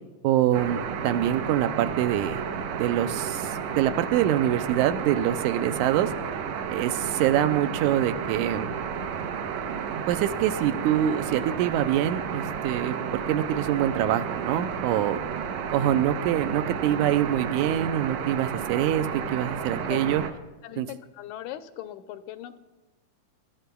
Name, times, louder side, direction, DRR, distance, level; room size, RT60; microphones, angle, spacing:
voice 1, 0.2-2.4 2.7-6.1 6.7-8.7 10.1-15.2 15.7-20.2 20.8-20.9, right 11 dB, 90° right, 10 dB, 2.0 m, -25 dB
sound 1, 0.5-20.3, right 7 dB, 70° right, 1.8 m, -32 dB
voice 2, 20.6-22.6, left 13 dB, 90° left, 10 dB, 2.1 m, -39 dB
23.0 x 12.5 x 2.3 m, 1.1 s
omnidirectional pair, 3.4 m